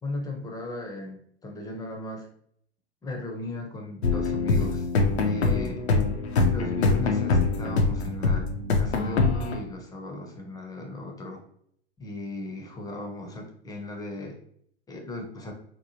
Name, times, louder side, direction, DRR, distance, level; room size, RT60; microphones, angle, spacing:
voice 1, 0.0-2.3 3.0-4.9 5.1-5.8 6.5-8.5 8.8-11.4 12.0-14.4 14.9-15.5, left 1 dB, 10° left, 1 dB, 0.5 m, -36 dB
sound 1, 4.0-9.6, left 3 dB, 85° left, 0.5 m, -24 dB
2.9 x 2.1 x 2.7 m, 0.66 s
figure-of-eight pair, 90°, 32 cm